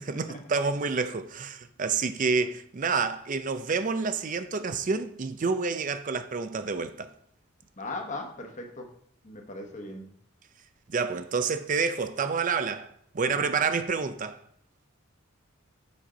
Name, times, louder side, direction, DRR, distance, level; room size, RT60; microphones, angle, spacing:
voice 1, 0.0-7.1 10.9-14.4, right 5 dB, 40° right, 0.5 m, -28 dB
voice 2, 7.8-8.9 9.2-10.0, left 2 dB, 35° left, 1.2 m, -38 dB
7.2 x 4.4 x 5.1 m
head